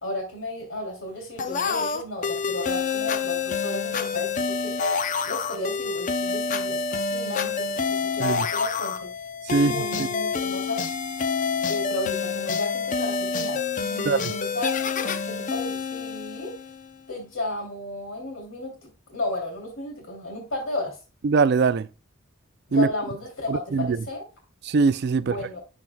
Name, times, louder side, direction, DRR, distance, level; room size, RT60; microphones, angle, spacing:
voice 1, 0.0-4.7 5.2-9.1 9.5-10.8 11.6-16.5 17.1-21.0 22.7-24.3 25.1-25.6, left 1 dB, 70° left, 3.0 m, -33 dB
sound 1, 1.4-16.9, left 5 dB, 40° left, 0.5 m, -27 dB
voice 2, 21.2-21.9 22.7-22.9 23.5-24.0 24.6-25.4, right 4 dB, 50° right, 0.4 m, -21 dB
12.0 x 4.5 x 2.3 m
head